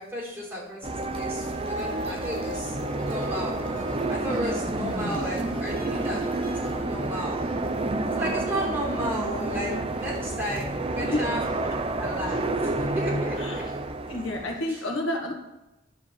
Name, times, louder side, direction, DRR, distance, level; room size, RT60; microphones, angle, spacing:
voice 1, 0.0-2.8 3.0-3.6 4.1-7.5 8.1-11.5 11.9-13.6 14.7-14.8, equal, 10° right, -5 dB, 3.8 m, -34 dB
sound 1, 0.8-14.6, right 2 dB, 30° right, 0.6 m, -29 dB
sound 2, 1.4-6.8, right 1 dB, 5° left, 2.7 m, -42 dB
voice 2, 4.8-5.2 6.8-6.9 7.4-7.7 11.0-11.3 13.4-13.6 14.1-15.3, left 1 dB, 75° left, 0 dB, 1.8 m, -31 dB
11.0 x 5.0 x 7.2 m, 0.97 s
head